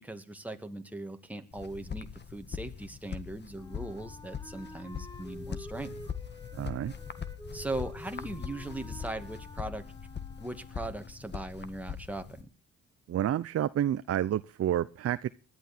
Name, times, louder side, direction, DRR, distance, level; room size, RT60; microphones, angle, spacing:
voice 1, 0.0-5.9 7.5-9.8 10.4-12.5, right 2 dB, 5° right, 6 dB, 2.2 m, -39 dB
sound 1, 1.5-12.4, left 7 dB, 35° left, 1.5 m, -42 dB
Wind instrument woodwind instrument, 3.5-11.2, equal, 15° left, 2.0 m, -49 dB
voice 2, 6.5-6.9 13.1-15.3, right 11 dB, 50° right, 13 dB, 0.7 m, -29 dB
19.5 x 11.5 x 4.4 m, 0.37 s
cardioid pair, 90°, 30 cm